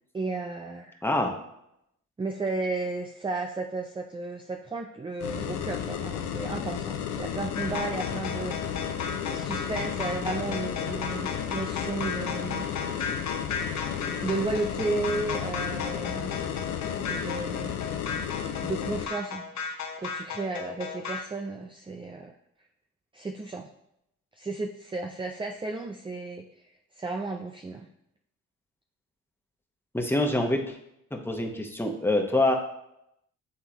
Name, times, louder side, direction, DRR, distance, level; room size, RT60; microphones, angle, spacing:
voice 1, 0.1-1.0 2.2-12.7 14.2-16.4 17.1-17.8 18.6-19.5 20.0-22.3 23.1-23.7 24.3-26.5 26.9-27.9, right 3 dB, 15° right, 4 dB, 0.5 m, -33 dB
voice 2, 1.0-1.3 29.9-30.7 31.1-32.5, left 2 dB, 5° left, 1 dB, 1.2 m, -25 dB
sound 1, 5.2-19.1, left 9 dB, 80° left, 0.7 m, -33 dB
sound 2, 7.5-21.2, left 5 dB, 45° left, 1.0 m, -35 dB
8.6 x 3.7 x 3.0 m, 0.79 s
hypercardioid pair, 45°, 38 cm